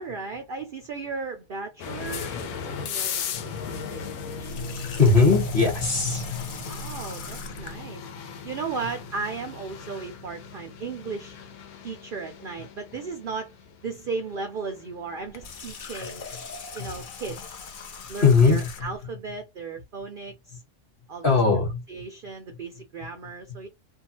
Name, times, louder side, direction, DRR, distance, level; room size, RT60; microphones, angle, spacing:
voice 1, 0.0-4.6 6.4-8.1 8.4-11.4 11.8-13.6 13.8-16.3 16.7-17.4 18.1-20.6 21.1-21.4 21.9-23.7, right 4 dB, 80° right, 0.4 m, -36 dB
sound 1, 1.8-18.6, left 5 dB, 80° left, 1.1 m, -38 dB
Water tap faucet, 4.4-7.8 15.2-19.0, left 5 dB, 65° left, 0.5 m, -40 dB
voice 2, 4.8-6.7 16.8-16.9 18.2-18.7 21.2-21.8, left 4 dB, 40° left, 1.2 m, -20 dB
2.7 x 2.2 x 3.0 m
omnidirectional pair, 1.5 m